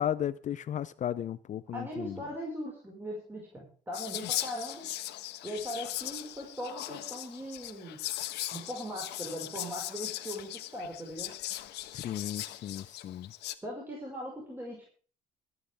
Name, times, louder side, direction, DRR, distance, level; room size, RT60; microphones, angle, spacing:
voice 1, 0.0-2.2 11.9-13.3, left 10 dB, 45° left, 0.6 m, -34 dB
voice 2, 1.7-4.9 5.4-8.0 8.5-11.3 13.6-14.9, equal, 10° right, 5.6 m, -39 dB
Whispering, 3.9-13.5, left 14 dB, 80° left, 1.3 m, -39 dB
23.0 x 9.4 x 3.6 m
cardioid pair, 110°, 17 cm